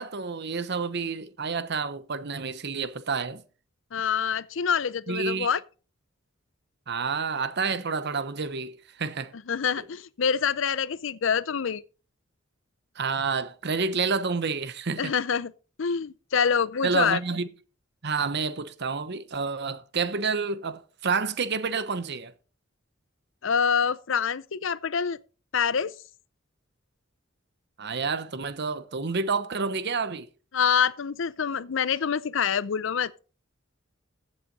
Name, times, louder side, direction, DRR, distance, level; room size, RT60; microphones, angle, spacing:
voice 1, 0.0-3.4 5.1-5.5 6.9-9.3 9.8-9.9 13.0-15.1 16.8-17.5 18.0-22.3 27.8-30.3, right 4 dB, 60° right, 1.0 m, -29 dB
voice 2, 3.9-5.6 9.5-11.8 15.0-15.5 15.8-17.2 23.4-25.2 25.5-25.9 30.5-33.1, left 7 dB, 70° left, 0.6 m, -26 dB
15.0 x 7.7 x 4.1 m
head